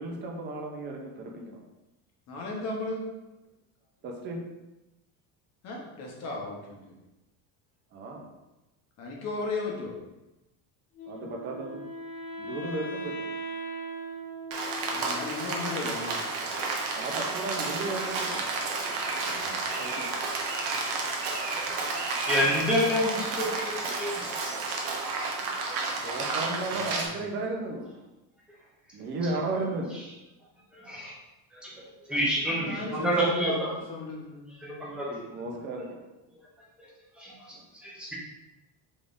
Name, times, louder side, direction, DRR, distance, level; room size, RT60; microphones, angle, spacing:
voice 1, 0.0-1.6 4.0-4.5 7.9-8.2 11.1-11.8 12.4-13.1 16.9-18.4 19.8-20.1 26.0-28.0 28.9-29.9 35.3-36.0 37.5-37.6, right 2 dB, 25° right, 1 dB, 0.5 m, -34 dB
voice 2, 2.3-3.1 5.6-6.9 9.0-10.0 14.9-16.3 19.2-19.6 26.2-26.8 27.2-27.3 32.5-34.5, left 2 dB, 40° left, -1 dB, 0.9 m, -36 dB
Wind instrument woodwind instrument, 11.0-16.0, right 1 dB, 70° left, 1.2 m, -39 dB
Rain, 14.5-27.1, right 3 dB, 65° right, 0.8 m, -31 dB
voice 3, 22.3-24.3 25.1-26.0 26.3-26.5 30.7-31.1 31.5-33.7 34.6-35.2 36.8-36.9 37.2-37.3 37.8-38.1, equal, ahead, -6 dB, 0.8 m, -29 dB
3.5 x 3.5 x 2.5 m, 0.99 s
cardioid pair, 155°, 42 cm